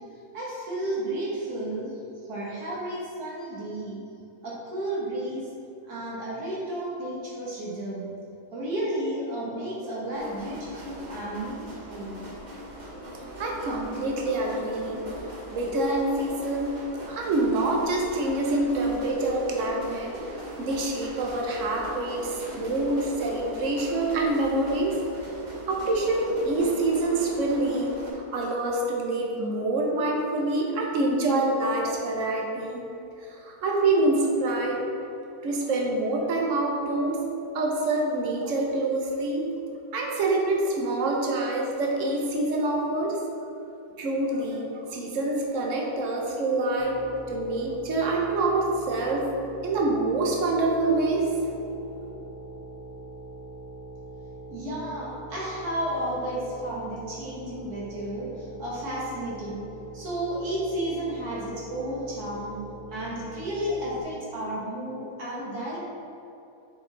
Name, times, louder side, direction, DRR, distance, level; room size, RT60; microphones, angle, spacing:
voice 1, 0.3-2.0 2.3-4.0 4.4-5.5 5.8-8.1 8.5-12.2 54.5-59.6 59.9-62.6 62.9-65.8, right 1 dB, 80° right, -6 dB, 2.0 m, -32 dB
sound 1, 10.1-28.1, right 1 dB, 30° right, 1.1 m, -40 dB
voice 2, 13.0-15.0 15.5-20.1 20.6-25.0 25.7-32.8 33.2-34.8 35.4-39.6 39.9-43.2 44.0-47.0 47.3-49.3 49.6-51.3, right 2 dB, 55° right, 0 dB, 1.2 m, -26 dB
sound 2, 46.8-64.0, right 2 dB, 10° left, 0.5 m, -42 dB
6.6 x 4.6 x 3.9 m, 2.8 s
omnidirectional pair, 1.6 m